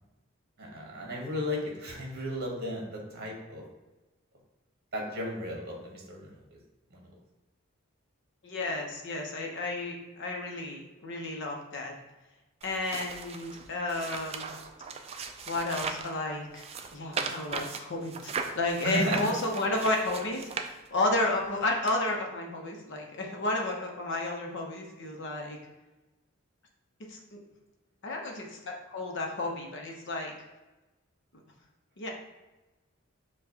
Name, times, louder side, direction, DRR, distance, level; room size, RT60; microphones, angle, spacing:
voice 1, 0.6-3.6 4.9-6.3 6.9-7.1 18.8-19.2, equal, 50° right, -1 dB, 1.2 m, -34 dB
voice 2, 8.4-11.9 12.6-14.5 15.5-25.6 27.1-27.4 28.0-30.3 32.0-32.1, left 2 dB, 60° left, 1 dB, 0.8 m, -32 dB
sound 1, 12.6-16.1 16.5-21.2 21.9-22.0, right 5 dB, 30° right, 0.3 m, -38 dB
6.8 x 2.4 x 2.8 m, 1.1 s
head